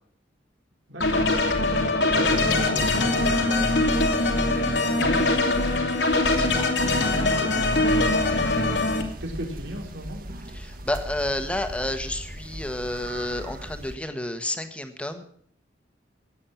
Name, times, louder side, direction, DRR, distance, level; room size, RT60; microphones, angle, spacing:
voice 1, 0.9-1.3 1.6-6.3 6.8-10.2, right 1 dB, 85° right, 1 dB, 3.8 m, -38 dB
sound 1, 1.0-9.0, left 2 dB, 70° left, 2.6 m, -22 dB
voice 2, 6.2-6.7 10.5-15.2, left 1 dB, 5° left, 7 dB, 1.5 m, -30 dB
sound 2, 7.9-14.0, right 1 dB, 50° right, 1.7 m, -38 dB
16.0 x 9.8 x 7.0 m, 0.63 s
head